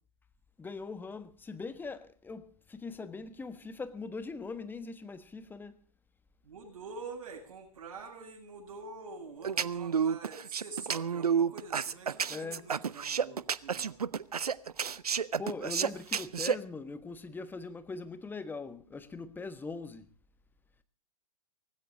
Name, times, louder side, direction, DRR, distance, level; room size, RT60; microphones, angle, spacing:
voice 1, 0.6-5.8 12.3-12.7 15.4-20.0, left 4 dB, 10° left, 1.3 m, -41 dB
voice 2, 6.4-14.0, right 4 dB, 60° right, 7.9 m, -46 dB
sound 1, 9.4-16.6, right 7 dB, 75° right, 0.7 m, -30 dB
18.5 x 16.0 x 3.8 m
figure-of-eight pair, 110°, 19 cm